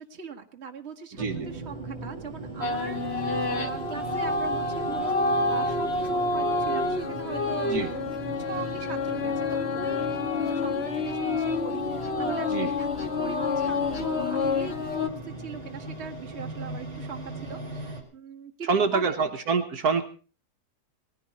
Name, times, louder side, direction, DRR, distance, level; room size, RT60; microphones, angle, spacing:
voice 1, 0.0-8.0 8.4-10.1 10.4-19.2, right 5 dB, 40° right, 4 dB, 1.8 m, -41 dB
sound 1, 1.2-18.0, right 3 dB, 20° right, 3.9 m, -39 dB
voice 2, 1.2-1.5 7.7-7.9 12.5-12.7 18.6-20.0, right 5 dB, 65° right, 5 dB, 1.7 m, -26 dB
sound 2, 2.6-15.1, left 3 dB, 40° left, 1.3 m, -28 dB
19.0 x 15.5 x 4.2 m, 0.37 s
omnidirectional pair, 1.8 m